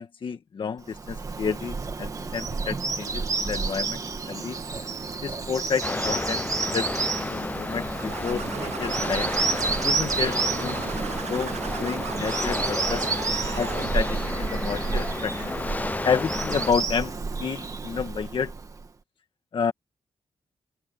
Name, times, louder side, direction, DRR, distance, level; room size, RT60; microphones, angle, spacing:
voice 1, 0.0-4.0 4.2-4.6 5.2-9.3 9.8-11.0 11.3-11.5 11.8-13.1 13.5-15.6 16.0-18.5 19.5-19.7, left 6 dB, 50° left, 1.6 m, -30 dB
Bird vocalization bird call bird song, 0.9-18.9, right 4 dB, 30° right, 2.0 m, -30 dB
sound 1, 5.8-16.7, left 2 dB, 15° left, 0.6 m, -32 dB
sound 2, 7.8-14.4, right 9 dB, 75° right, 0.8 m, -37 dB
open air
wide cardioid pair, 175°, 11 cm